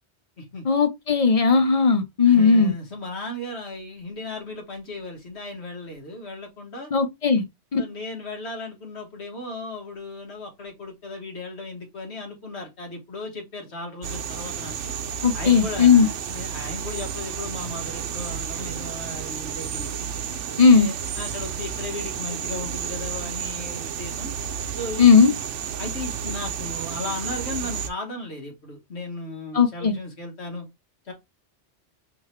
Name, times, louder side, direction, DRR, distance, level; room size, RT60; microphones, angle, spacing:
voice 1, 0.6-2.7 6.9-7.4 7.7-7.8 15.2-16.1 20.6-20.9 25.0-25.3 29.5-29.9, left 5 dB, 40° left, 0.6 m, -17 dB
voice 2, 2.3-6.9 7.8-14.9 15.3-20.0 20.7-24.3 24.8-25.2 25.8-30.7 31.1-31.2, left 2 dB, 65° left, 1.7 m, -36 dB
sound 1, 14.0-27.9, right 8 dB, 80° right, 1.0 m, -32 dB
3.6 x 3.4 x 3.1 m
omnidirectional pair, 1.2 m